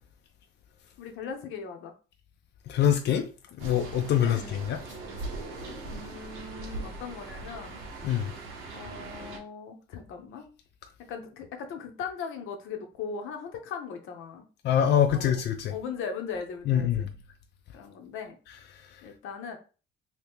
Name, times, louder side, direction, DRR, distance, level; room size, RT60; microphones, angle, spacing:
voice 1, 1.0-1.9 4.2-4.6 5.8-7.8 8.7-10.5 11.1-14.4 15.1-15.4 15.7-17.1 17.7-18.3 19.0-19.6, left 6 dB, 85° left, 0.8 m, -39 dB
voice 2, 2.7-3.3 3.6-4.8 8.0-8.3 14.6-15.7 16.7-17.0, left 9 dB, 60° left, 0.4 m, -24 dB
sound 1, 3.6-9.4, right 3 dB, 90° right, 1.0 m, -40 dB
2.9 x 2.8 x 3.5 m
cardioid pair, 90°, 20 cm